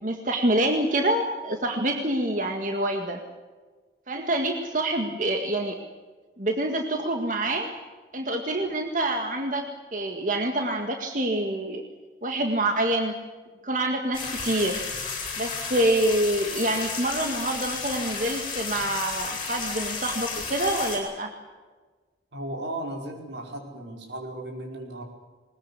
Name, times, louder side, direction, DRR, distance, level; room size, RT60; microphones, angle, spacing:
voice 1, 0.0-3.2 4.1-5.8 6.4-7.7 8.1-9.6 9.9-11.8 12.2-13.1 13.6-14.8 15.4-21.3, right 1 dB, 45° right, 4 dB, 1.9 m, -26 dB
sound 1, 14.1-21.0, left 5 dB, 30° left, 6.7 m, -33 dB
voice 2, 22.3-25.0, right 1 dB, 90° right, 2 dB, 5.1 m, -35 dB
21.0 x 20.5 x 8.5 m, 1.3 s
head